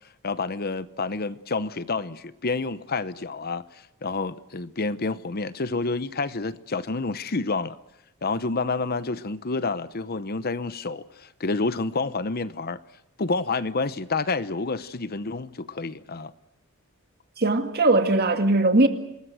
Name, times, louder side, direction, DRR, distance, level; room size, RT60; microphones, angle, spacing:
voice 1, 0.2-7.8 8.2-12.8 13.2-16.3, left 3 dB, 45° left, 0.8 m, -29 dB
voice 2, 17.4-18.9, right 2 dB, 45° right, 2.1 m, -20 dB
27.5 x 20.5 x 7.9 m
head